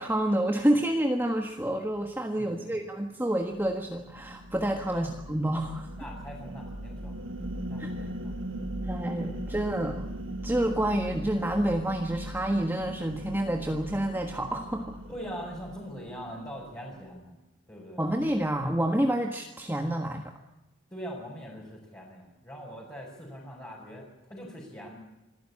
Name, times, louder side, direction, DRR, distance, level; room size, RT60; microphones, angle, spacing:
voice 1, 0.0-5.9 7.8-7.9 8.8-10.1 10.4-15.0 18.0-20.3, right 1 dB, 10° right, 3 dB, 1.5 m, -28 dB
voice 2, 2.4-2.7 4.9-5.1 6.0-7.2 7.7-8.3 15.1-17.4 17.7-18.0 20.9-25.0, equal, 15° left, -6 dB, 5.9 m, -42 dB
sound 1, 3.5-17.1, right 1 dB, 75° right, 1.7 m, -39 dB
26.5 x 15.0 x 8.7 m, 1.0 s
head